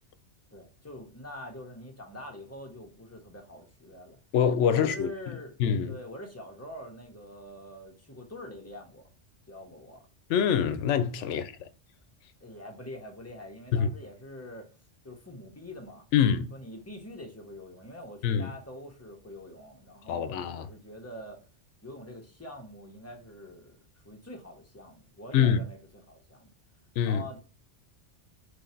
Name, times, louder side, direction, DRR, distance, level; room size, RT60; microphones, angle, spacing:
voice 1, 0.5-4.2 4.6-5.6 5.9-9.1 9.5-10.1 11.3-11.5 12.4-14.7 15.0-16.1 16.5-21.4 21.8-26.5 27.0-27.4, left 1 dB, 15° left, 0.8 m, -45 dB
voice 2, 4.3-5.1 5.6-5.9 10.3-11.5 13.7-13.9 16.1-16.5 18.2-18.5 20.1-20.7 25.3-25.6 27.0-27.2, left 8 dB, 80° left, 0.9 m, -25 dB
3.8 x 3.2 x 4.3 m
omnidirectional pair, 1.2 m